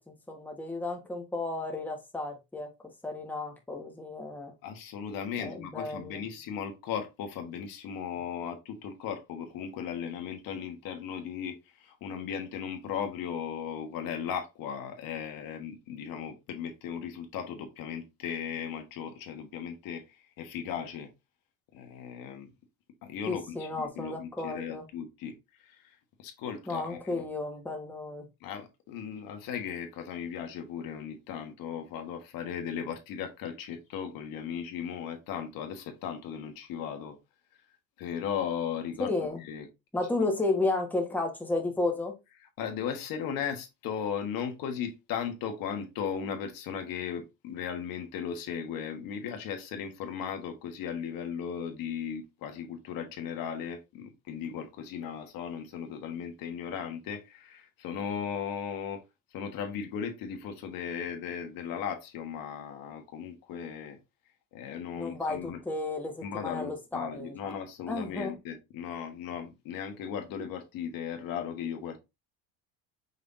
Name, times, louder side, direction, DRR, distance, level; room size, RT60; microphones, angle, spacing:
voice 1, 0.0-2.7 3.0-4.5 5.4-6.2 23.3-24.9 26.7-28.3 39.0-39.4 39.9-42.2 65.0-67.6 67.9-68.3, left 2 dB, 5° left, 1.4 m, -33 dB
voice 2, 4.6-21.1 21.7-22.5 23.0-27.2 28.4-37.2 38.0-39.1 39.4-39.7 42.6-59.0 59.3-64.0 64.5-65.6 66.2-72.0, left 7 dB, 65° left, 1.4 m, -37 dB
5.5 x 3.4 x 2.6 m
supercardioid pair, 100°, 37 cm